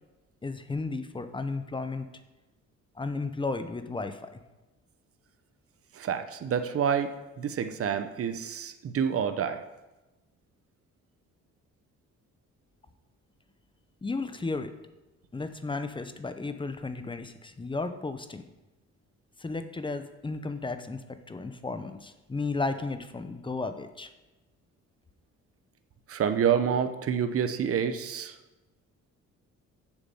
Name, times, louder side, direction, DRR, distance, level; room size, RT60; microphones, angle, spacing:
voice 1, 0.4-2.1 3.0-4.4 14.0-14.7 15.3-18.4 19.4-24.1, left 3 dB, 15° left, 9 dB, 0.8 m, -34 dB
voice 2, 5.9-9.6 26.1-28.4, right 8 dB, 50° right, 9 dB, 0.8 m, -28 dB
7.2 x 6.9 x 5.6 m, 1.1 s
cardioid pair, 90°, 30 cm